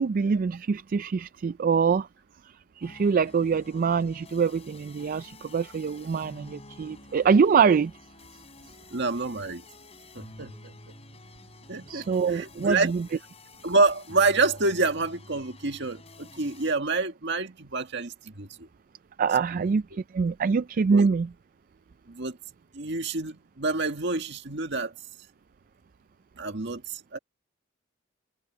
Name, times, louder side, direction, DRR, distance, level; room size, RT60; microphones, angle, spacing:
voice 1, 0.0-2.1 2.4-7.9 11.9-13.0 19.2-21.3, right 5 dB, 45° right, 0.3 m, -24 dB
sound 1, 2.8-16.7, left 2 dB, 30° left, 3.8 m, -50 dB
voice 2, 8.9-9.6 10.1-10.7 11.7-12.9 13.6-18.7 19.5-19.6 20.9-21.1 22.1-22.4 22.7-24.9 26.4-27.2, right 3 dB, 60° right, 1.9 m, -28 dB
head